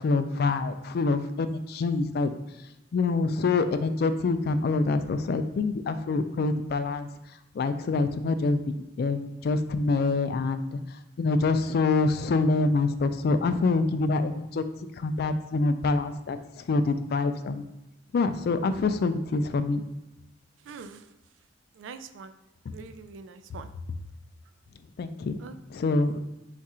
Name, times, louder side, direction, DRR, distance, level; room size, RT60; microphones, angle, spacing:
voice 1, 0.0-2.3 2.9-7.1 7.5-10.8 11.2-14.6 15.0-17.6 18.1-19.8 25.0-25.4 25.7-26.2, left 3 dB, 55° left, 10 dB, 0.3 m, -26 dB
voice 2, 20.7-21.0 21.8-22.4 22.7-23.7 25.4-25.5, right 5 dB, 85° right, 11 dB, 0.3 m, -43 dB
4.5 x 2.5 x 4.2 m, 0.94 s
head